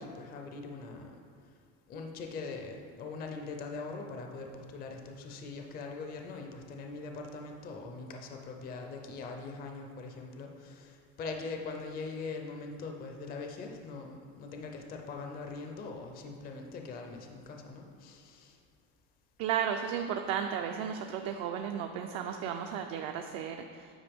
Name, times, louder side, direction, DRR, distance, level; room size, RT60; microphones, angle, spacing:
voice 1, 0.0-1.5 1.9-18.6 21.2-21.3, left 4 dB, 25° left, 3 dB, 0.4 m, -42 dB
voice 2, 19.4-23.9, right 8 dB, 60° right, 4 dB, 0.5 m, -34 dB
8.9 x 4.3 x 3.5 m, 2.1 s
cardioid pair, 150°, 39 cm